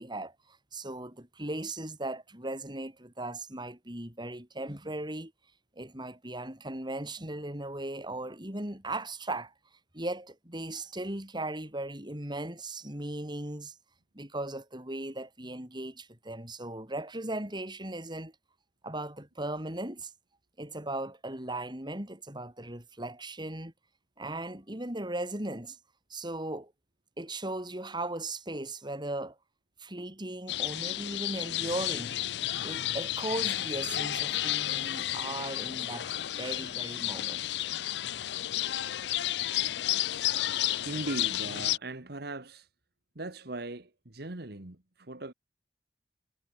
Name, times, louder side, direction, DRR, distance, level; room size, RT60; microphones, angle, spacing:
voice 1, 0.0-5.3 5.8-9.5 9.9-13.7 14.1-18.3 18.8-20.1 20.6-23.7 24.2-25.8 26.1-26.7 27.2-29.4 29.8-32.2 32.6-36.1 36.4-37.4, right 1 dB, 25° right, 6.2 m, -37 dB
sound 1, 30.5-41.8, left 14 dB, 70° left, 0.5 m, -32 dB
voice 2, 40.8-42.7 43.2-45.3, right 2 dB, 60° right, 1.9 m, -39 dB
head